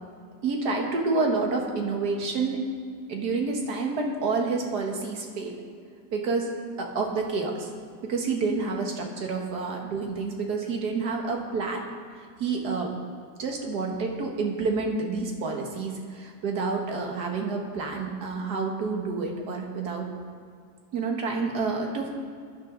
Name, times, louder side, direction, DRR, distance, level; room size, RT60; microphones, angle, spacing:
voice 1, 0.4-2.6 3.1-5.6 6.1-7.7 8.0-11.8 12.4-12.9 13.4-20.1 20.9-22.1, right 4 dB, 75° right, 1 dB, 2.0 m, -28 dB
15.0 x 11.0 x 3.9 m, 2.2 s
omnidirectional pair, 1.7 m